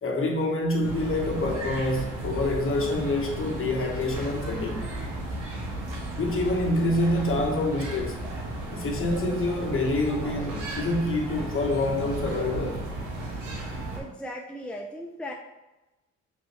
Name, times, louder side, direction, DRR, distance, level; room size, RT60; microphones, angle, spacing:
voice 1, 0.0-4.9 6.2-8.2 8.7-12.8, left 2 dB, 45° left, 1.5 m, -27 dB
sound 1, 0.8-14.0, right 1 dB, 90° right, 1.6 m, -34 dB
voice 2, 13.9-15.3, equal, 5° left, 0.6 m, -37 dB
6.0 x 5.4 x 3.2 m
cardioid pair, 90°, 30 cm